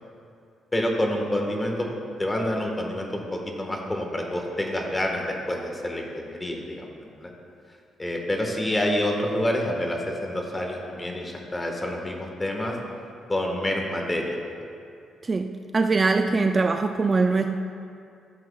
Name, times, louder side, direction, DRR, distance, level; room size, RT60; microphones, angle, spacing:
voice 1, 0.7-1.9 2.2-7.3 8.0-12.8 13.3-14.4, left 1 dB, 20° left, 1 dB, 1.4 m, -28 dB
voice 2, 15.2-17.6, right 3 dB, 30° right, 6 dB, 0.3 m, -22 dB
14.0 x 7.7 x 2.3 m, 2.5 s
cardioid pair, 90°, 0 cm